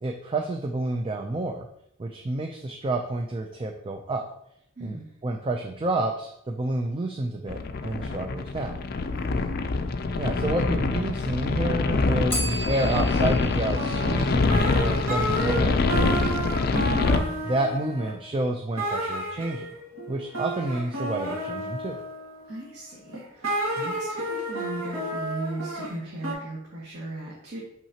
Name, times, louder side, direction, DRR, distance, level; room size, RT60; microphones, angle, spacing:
voice 1, 0.0-1.7 2.0-4.2 4.8-5.0 5.2-8.8 10.1-16.3 16.6-16.7 17.1-19.7 20.1-22.0 23.8-23.9, right 2 dB, 25° right, 3 dB, 0.4 m, -29 dB
voice 2, 4.8-5.1 9.1-9.7 16.7-17.5 22.5-27.6, right 1 dB, 50° right, -5 dB, 1.4 m, -37 dB
sound 1, 7.5-17.2, left 3 dB, 45° left, 0.4 m, -25 dB
Bell, 12.3-15.1, equal, 10° left, 0.9 m, -36 dB
sound 2, 13.7-15.6 15.9-18.2 18.8-22.6 23.1-26.3, right 1 dB, 80° right, 1.9 m, -31 dB
5.9 x 5.7 x 2.8 m, 0.74 s
head